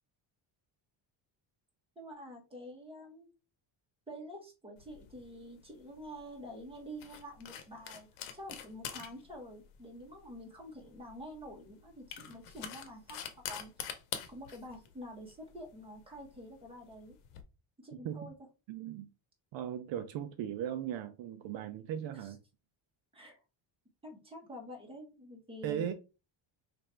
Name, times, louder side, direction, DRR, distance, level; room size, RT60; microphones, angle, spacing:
voice 1, 1.9-3.3 4.1-13.9 14.3-17.2 17.8-18.3 22.1-22.3 23.1-23.4 24.0-25.9, equal, 10° right, 1.2 m, -48 dB
sound 1, 4.8-17.4, left 9 dB, 85° left, 0.9 m, -47 dB
voice 2, 17.9-18.3 18.7-19.1 19.5-22.4 25.6-25.9, right 9 dB, 65° right, 0.6 m, -38 dB
3.1 x 2.6 x 4.3 m
cardioid pair, 135°, 50 cm